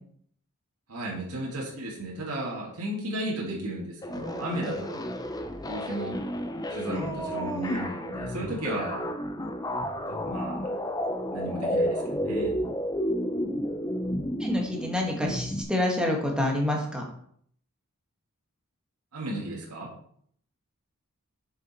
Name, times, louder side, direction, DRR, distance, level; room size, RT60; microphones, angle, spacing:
voice 1, 0.9-5.0 5.6-6.2 6.7-9.0 10.2-10.7 11.3-12.5 19.1-19.9, right 1 dB, 85° right, -4 dB, 2.4 m, -34 dB
sound 1, 4.0-15.6, equal, 15° left, 0.6 m, -31 dB
voice 2, 6.9-7.8 14.4-17.0, left 1 dB, 5° right, 0 dB, 1.8 m, -28 dB
7.6 x 6.6 x 4.5 m, 0.64 s
head